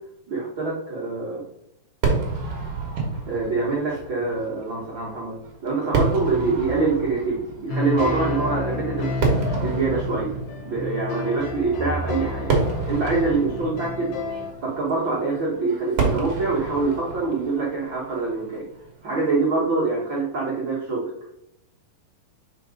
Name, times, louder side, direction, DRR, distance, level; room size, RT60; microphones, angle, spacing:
voice 1, 0.3-1.4 3.3-5.3 5.6-9.2 9.5-10.3 10.6-12.5 12.8-14.1 14.6-18.6 19.0-21.1, right 3 dB, 80° right, -6 dB, 1.0 m, -25 dB
Fireworks, 2.0-19.4, right 4 dB, 65° right, 1.5 m, -30 dB
sound 1, 7.7-14.5, left 2 dB, 65° left, 1.7 m, -30 dB
4.9 x 4.6 x 5.0 m, 0.81 s
omnidirectional pair, 4.5 m